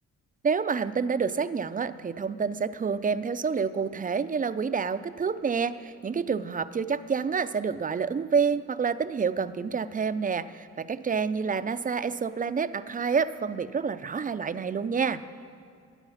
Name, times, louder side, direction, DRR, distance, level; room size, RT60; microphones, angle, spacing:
voice 1, 0.4-15.2, right 5 dB, 25° right, 12 dB, 0.6 m, -28 dB
18.0 x 10.5 x 5.7 m, 2.4 s
cardioid pair, 90°, 30 cm